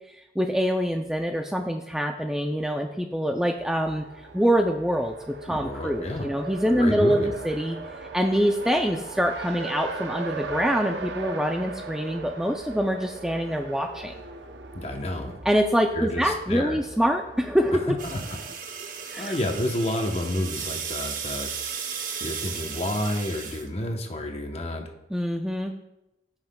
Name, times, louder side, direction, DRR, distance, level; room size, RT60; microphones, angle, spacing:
voice 1, 0.4-4.0 4.3-7.8 8.1-14.1 15.4-18.0 19.1-19.3 25.1-25.7, equal, 5° right, 3 dB, 0.3 m, -25 dB
Race car auto racing, 3.6-18.5, right 4 dB, 75° right, 0.7 m, -39 dB
voice 2, 5.5-6.3 6.7-7.3 14.7-15.4 15.9-16.8 18.0-18.4 19.2-21.5 22.2-24.9, left 1 dB, 35° left, 4 dB, 0.9 m, -30 dB
sound 1, 18.0-23.7, right 6 dB, 50° right, 0.8 m, -35 dB
15.5 x 5.8 x 2.2 m, 0.93 s
head